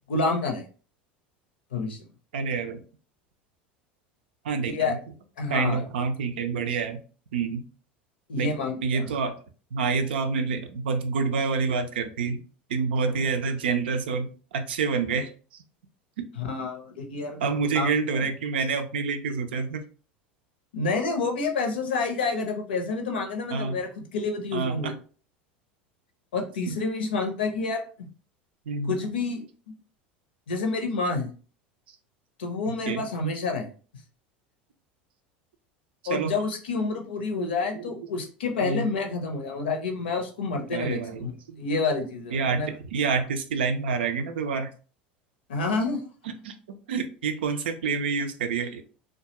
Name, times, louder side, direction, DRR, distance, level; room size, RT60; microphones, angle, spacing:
voice 1, 0.1-0.6 1.7-2.0 4.7-4.9 5.4-5.8 8.3-9.1 16.4-17.9 18.1-18.2 20.7-24.9 26.3-28.1 28.9-29.7 30.5-31.3 32.4-33.7 36.1-42.7 45.5-46.0, left 3 dB, 75° left, 4 dB, 0.6 m, -29 dB
voice 2, 2.3-2.8 4.4-5.0 5.5-7.0 7.3-7.6 8.4-8.5 8.8-9.4 9.7-12.4 12.7-15.3 17.4-19.8 23.5-23.8 24.5-24.9 26.6-26.7 28.7-29.1 32.7-33.0 36.1-36.3 37.5-37.9 38.6-38.9 40.7-41.6 42.3-44.7 46.4-46.5 46.9-48.8, right 5 dB, 75° right, 7 dB, 0.4 m, -28 dB
2.3 x 2.2 x 2.8 m, 0.38 s
hypercardioid pair, 80°, 6 cm